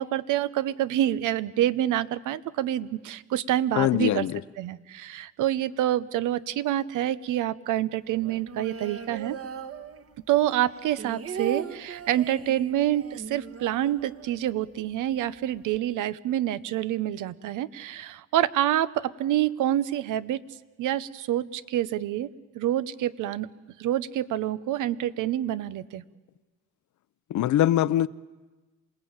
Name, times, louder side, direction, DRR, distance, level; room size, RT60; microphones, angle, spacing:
voice 1, 0.0-4.3 4.6-9.4 10.3-20.4 20.8-22.3 22.5-23.5 23.8-26.0, right 12 dB, 85° right, 0.9 m, -27 dB
voice 2, 3.8-4.3 27.3-28.1, left 12 dB, 70° left, 0.7 m, -22 dB
sound 1, 8.2-10.4 10.7-14.6 14.9-15.0 15.3-15.8, right 6 dB, 50° right, 1.9 m, -38 dB
27.5 x 19.5 x 8.9 m
cardioid pair, 90°, 30 cm